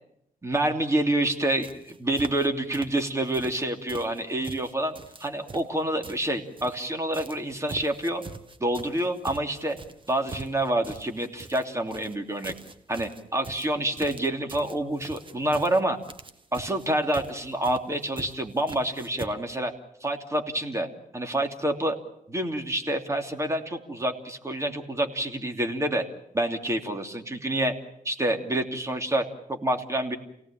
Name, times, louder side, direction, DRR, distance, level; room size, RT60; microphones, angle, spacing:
voice 1, 0.4-8.2 8.6-9.8 10.1-12.5 12.9-16.0 16.5-19.7 20.0-20.9 21.1-22.0 22.3-26.0 26.3-27.7 28.0-30.2, right 1 dB, 20° right, 4 dB, 2.9 m, -27 dB
sound 1, 1.3-1.4 1.6-2.5 2.7-3.6 3.9-6.9 7.1-19.3, right 3 dB, 35° right, 1.7 m, -43 dB
28.5 x 18.0 x 8.9 m, 0.76 s
wide cardioid pair, 120°, 15 cm